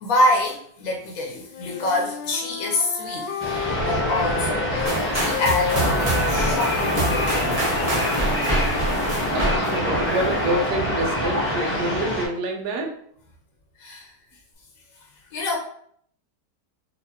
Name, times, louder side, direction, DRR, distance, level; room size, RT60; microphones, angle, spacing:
voice 1, 0.0-3.5 3.8-4.9 5.1-7.5 13.8-14.1 15.3-15.6, left 2 dB, 65° left, -1 dB, 1.0 m, -26 dB
Wind instrument woodwind instrument, 1.5-5.0 5.3-9.5, left 5 dB, 85° left, 1.3 m, -31 dB
sound 1, 3.4-12.3, equal, 15° left, 0.5 m, -25 dB
sound 2, 4.9-10.7, right 2 dB, 35° right, 0.5 m, -27 dB
voice 2, 9.1-12.9, right 2 dB, 75° right, 2 dB, 1.3 m, -27 dB
4.2 x 2.5 x 2.7 m, 0.64 s
omnidirectional pair, 1.8 m